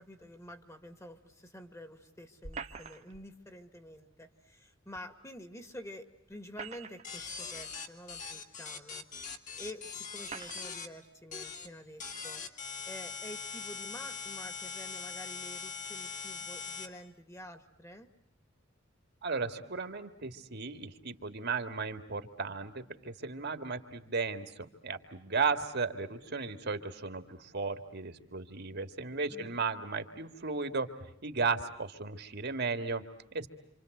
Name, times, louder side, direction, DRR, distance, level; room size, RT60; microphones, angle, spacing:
voice 1, 0.0-12.4 12.9-18.1 29.3-29.6, left 1 dB, 15° left, 8 dB, 1.9 m, -49 dB
sound 1, 2.4-3.3 5.0-5.1 6.3-7.2 8.1-8.2 9.2-9.3 10.2-10.7, right 5 dB, 35° right, 1.3 m, -44 dB
sound 2, 7.0-10.9 11.3-11.7 12.0-16.9, left 5 dB, 40° left, 2.4 m, -41 dB
voice 2, 19.2-30.9 31.2-33.5, right 4 dB, 55° right, 8 dB, 2.0 m, -35 dB
27.5 x 27.0 x 8.0 m, 0.76 s
head